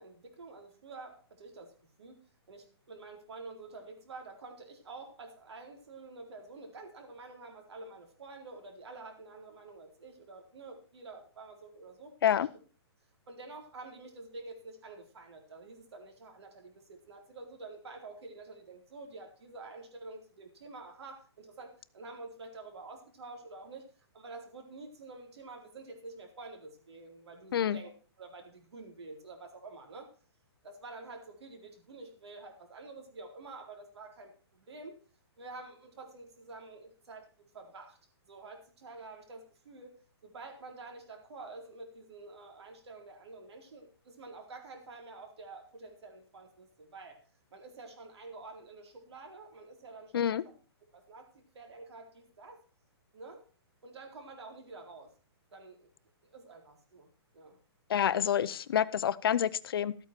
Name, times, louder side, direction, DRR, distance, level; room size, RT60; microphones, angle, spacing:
voice 1, 0.0-12.4 13.3-23.9 24.1-27.9 28.2-30.1 30.6-35.0 35.4-37.3 37.5-38.0 38.3-40.0 40.2-47.2 47.5-50.5 50.9-52.6 53.1-53.4 53.8-55.1 55.5-55.9 56.2-57.1 57.3-57.6, right 3 dB, 75° right, 3 dB, 4.1 m, -48 dB
voice 2, 57.9-59.9, left 9 dB, 60° left, 17 dB, 0.7 m, -28 dB
13.5 x 8.9 x 4.5 m, 0.38 s
hypercardioid pair, 165°, 14 cm